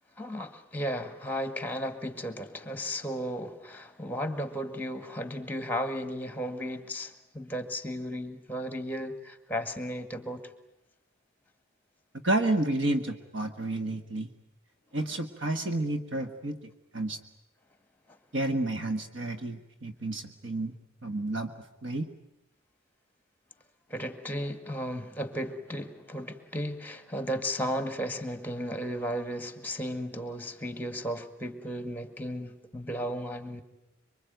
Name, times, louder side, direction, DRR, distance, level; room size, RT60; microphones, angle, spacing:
voice 1, 0.2-10.4 23.9-33.6, equal, 10° left, 9 dB, 1.8 m, -35 dB
voice 2, 12.2-14.3 14.9-16.6 16.9-17.2 18.3-20.7 21.0-21.5 21.8-22.1, right 2 dB, 65° right, 6 dB, 1.6 m, -30 dB
25.5 x 24.0 x 9.3 m, 0.89 s
head